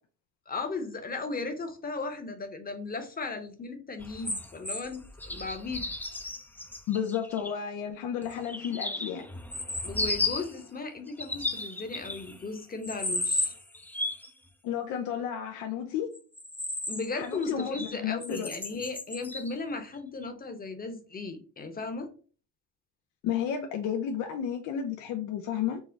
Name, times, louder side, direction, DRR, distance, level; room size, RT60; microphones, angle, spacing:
voice 1, 0.5-5.8 9.8-13.5 16.9-22.1, left 3 dB, 30° left, 0.8 m, -36 dB
sound 1, 4.0-7.5 8.2-10.6 11.1-12.5 12.8-14.3 16.1-17.9 18.2-19.5 20.2-20.3, left 2 dB, 5° left, 0.4 m, -34 dB
voice 2, 6.9-9.3 14.6-16.1 17.1-18.5 23.2-25.8, left 8 dB, 90° left, 0.5 m, -32 dB
3.6 x 2.0 x 3.9 m
cardioid pair, 90°, 30 cm